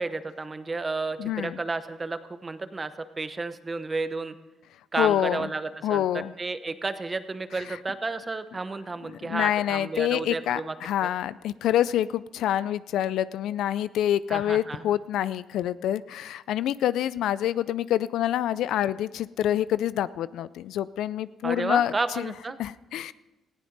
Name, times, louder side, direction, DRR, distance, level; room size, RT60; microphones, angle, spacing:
voice 1, 0.0-4.3 4.9-10.7 11.0-11.1 14.3-14.9 21.4-22.6, right 3 dB, 25° right, 11 dB, 1.0 m, -32 dB
voice 2, 1.2-1.6 5.0-5.5 5.8-6.3 7.7-7.8 9.2-22.3 22.6-23.1, left 11 dB, 80° left, 17 dB, 0.4 m, -27 dB
19.5 x 14.5 x 4.0 m, 1.1 s
cardioid pair, 90°, 0 cm